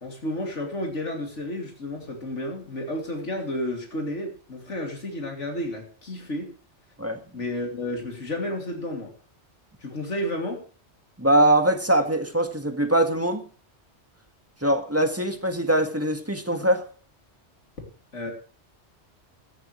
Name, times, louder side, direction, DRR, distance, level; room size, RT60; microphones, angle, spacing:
voice 1, 0.0-6.5 7.3-9.1 9.8-10.6 18.1-18.3, left 1 dB, 90° left, 2 dB, 3.2 m, -31 dB
voice 2, 11.2-13.4 14.6-16.8, right 1 dB, 10° right, 6 dB, 1.6 m, -22 dB
16.5 x 12.0 x 3.2 m, 0.41 s
omnidirectional pair, 1.2 m